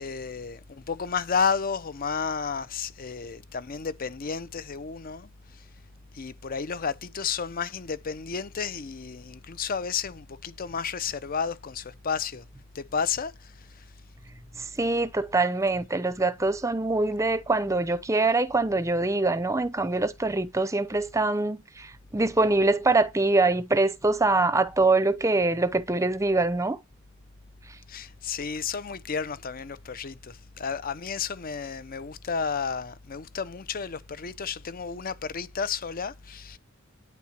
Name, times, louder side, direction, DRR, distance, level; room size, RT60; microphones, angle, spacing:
voice 1, 0.0-5.3 6.1-12.4 12.7-13.8 27.9-36.6, left 6 dB, 45° left, 0.6 m, -32 dB
voice 2, 14.8-26.8, right 3 dB, 15° right, 0.6 m, -24 dB
9.4 x 4.3 x 5.8 m
head